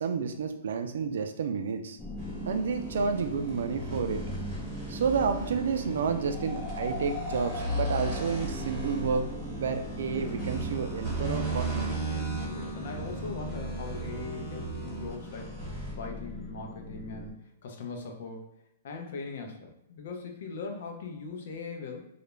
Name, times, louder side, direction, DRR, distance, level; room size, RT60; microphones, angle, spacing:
voice 1, 0.0-2.0 2.5-4.2 4.9-9.3 9.6-11.9, right 5 dB, 75° right, 7 dB, 0.3 m, -30 dB
sound 1, 2.0-17.3, left 1 dB, 10° left, 0.4 m, -40 dB
sound 2, 2.2-16.1, right 2 dB, 20° right, 1.0 m, -37 dB
voice 2, 12.4-18.6 18.8-22.0, left 4 dB, 60° left, 2 dB, 0.6 m, -40 dB
2.4 x 2.1 x 3.0 m, 0.83 s
hypercardioid pair, 160°, 0 cm